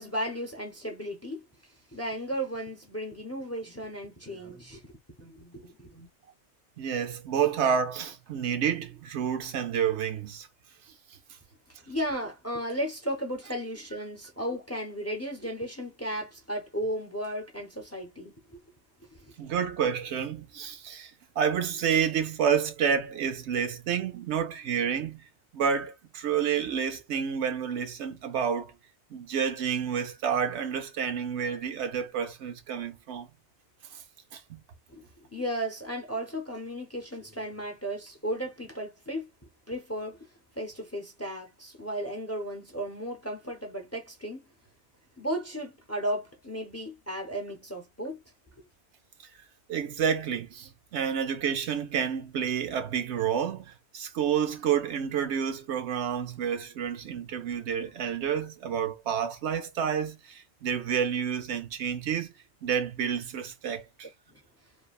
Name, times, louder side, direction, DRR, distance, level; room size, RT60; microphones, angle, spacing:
voice 1, 0.0-1.4 1.9-4.8 5.2-6.1 11.9-18.6 34.9-39.2 39.7-40.3 40.6-44.4 45.2-48.2 64.3-64.4, equal, 20° left, 0.5 m, -35 dB
voice 2, 6.8-10.5 19.4-21.1 21.4-25.2 25.5-28.7 29.1-33.3 34.3-34.6 49.7-62.3 62.6-64.1, right 7 dB, 85° right, 0.9 m, -29 dB
3.3 x 2.1 x 2.3 m
omnidirectional pair, 1.1 m